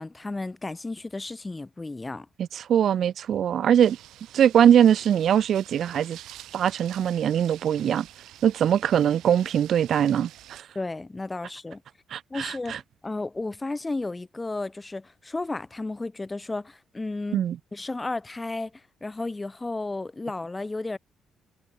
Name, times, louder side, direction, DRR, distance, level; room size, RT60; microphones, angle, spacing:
voice 1, 0.0-2.3 10.7-11.8 12.3-17.4 17.7-18.7 19.0-21.0, left 2 dB, 20° left, 1.4 m, -33 dB
voice 2, 2.5-4.0 4.3-6.2 6.5-8.1 8.4-10.6 12.1-12.8 17.3-17.6, right 9 dB, 65° right, 1.0 m, -21 dB
sound 1, 3.8-10.6, right 14 dB, 85° right, 2.6 m, -47 dB
cardioid pair, 90°, 0 cm